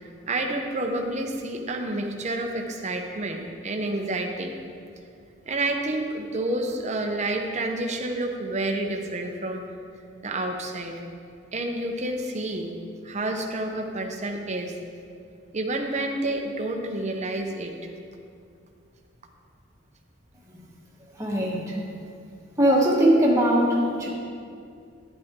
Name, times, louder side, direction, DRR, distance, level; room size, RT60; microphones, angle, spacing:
voice 1, 0.0-4.6 5.5-9.6 10.2-11.0 11.5-12.7 13.0-14.7 15.5-17.7, right 2 dB, 30° right, 3 dB, 0.9 m, -29 dB
voice 2, 21.2-21.8 22.5-24.1, right 1 dB, 15° right, -4 dB, 1.5 m, -21 dB
10.5 x 10.0 x 3.7 m, 2.4 s
head